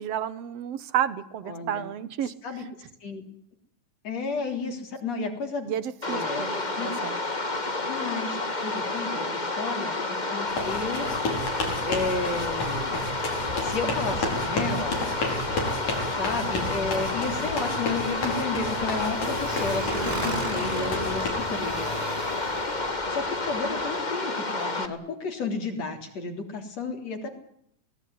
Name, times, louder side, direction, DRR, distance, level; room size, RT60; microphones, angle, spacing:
voice 1, 0.0-2.3 5.7-7.2, right 10 dB, 60° right, 15 dB, 1.9 m, -31 dB
voice 2, 1.5-1.8 2.4-2.6 3.0-3.2 4.0-5.7 6.1-6.9 7.8-9.9 10.3-11.1 11.9-13.0 13.6-15.0 16.1-22.0 23.1-27.3, left 4 dB, 50° left, 5 dB, 4.6 m, -32 dB
sound 1, 6.0-24.9, left 2 dB, 20° left, 1.3 m, -30 dB
sound 2, 10.5-21.3, left 2 dB, 70° left, 6.6 m, -32 dB
Motorcycle, 13.6-24.1, right 1 dB, 10° right, 3.8 m, -38 dB
24.0 x 19.0 x 9.7 m, 0.72 s
omnidirectional pair, 3.8 m